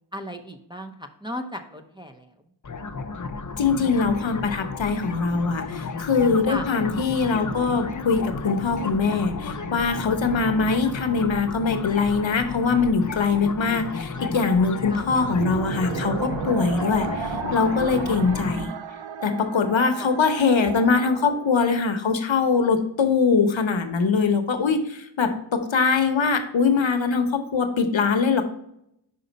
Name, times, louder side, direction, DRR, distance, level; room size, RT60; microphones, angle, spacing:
voice 1, 0.1-2.3 6.5-6.7 14.9-15.1 18.1-18.7 19.9-20.1, equal, 10° right, 2 dB, 0.6 m, -36 dB
sound 1, 2.6-18.6, left 4 dB, 40° left, 0.5 m, -33 dB
voice 2, 3.6-18.7 19.2-28.4, left 5 dB, 70° left, 7 dB, 0.8 m, -22 dB
sound 2, 15.2-21.8, right 7 dB, 70° right, 0.5 m, -34 dB
5.3 x 5.2 x 3.9 m, 0.77 s
wide cardioid pair, 65°, 48 cm